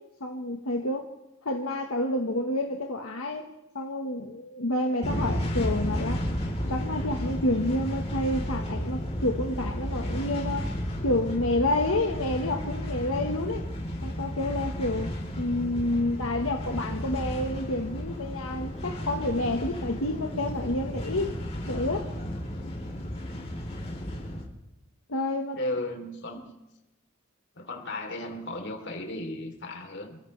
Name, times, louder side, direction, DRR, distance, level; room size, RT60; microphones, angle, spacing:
voice 1, 0.2-1.1 1.4-3.5 3.7-6.2 6.7-10.7 11.0-13.7 14.0-21.4 21.7-22.1 25.1-25.6, left 1 dB, 90° left, 1.5 m, -29 dB
sound 1, 5.0-24.4, equal, 30° left, 3.9 m, -33 dB
voice 2, 25.6-26.6 27.5-30.2, left 1 dB, 60° left, 3.5 m, -35 dB
28.0 x 14.5 x 3.4 m
head